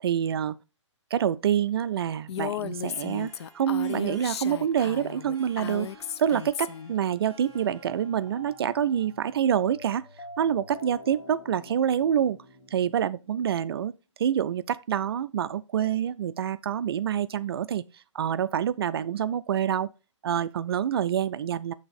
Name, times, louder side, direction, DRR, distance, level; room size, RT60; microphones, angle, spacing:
voice 1, 0.0-0.6 1.1-5.9 6.2-10.1 10.4-12.4 12.7-13.9 14.2-19.9 20.2-21.7, right 9 dB, 50° right, 0.4 m, -27 dB
Female speech woman speaking, 2.3-6.9, left 9 dB, 55° left, 0.4 m, -35 dB
Harp, 2.8-10.0, right 1 dB, ahead, 1.6 m, -55 dB
sound 1, 7.4-13.6, left 1 dB, 80° left, 2.2 m, -48 dB
6.2 x 3.5 x 4.9 m
hypercardioid pair, 140°, 16 cm